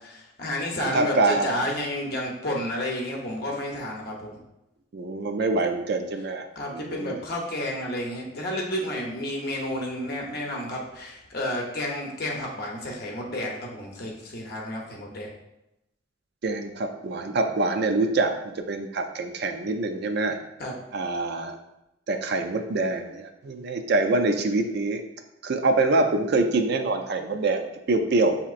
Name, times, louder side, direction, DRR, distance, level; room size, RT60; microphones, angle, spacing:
voice 1, 0.1-4.4 6.6-15.3 20.6-20.8, left 1 dB, 55° left, -1 dB, 0.8 m, -31 dB
voice 2, 0.8-1.6 4.9-6.5 6.7-7.2 16.4-20.4 20.9-21.6 22.1-25.0 25.4-28.4, right 2 dB, 55° right, 6 dB, 0.4 m, -25 dB
7.2 x 2.9 x 2.4 m, 0.90 s
head